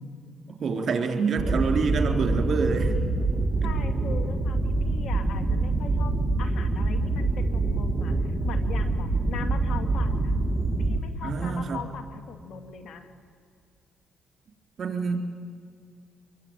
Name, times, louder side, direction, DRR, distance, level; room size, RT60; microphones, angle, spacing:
voice 1, 0.5-2.9 11.2-11.8 14.8-15.3, right 5 dB, 50° right, 5 dB, 3.9 m, -26 dB
sound 1, 1.4-11.0, right 2 dB, 5° right, 2.5 m, -25 dB
voice 2, 3.6-6.1 6.4-10.3 10.8-13.1, left 6 dB, 70° left, 8 dB, 2.8 m, -40 dB
25.0 x 23.0 x 9.1 m, 2.3 s
cardioid pair, 90°, 0 cm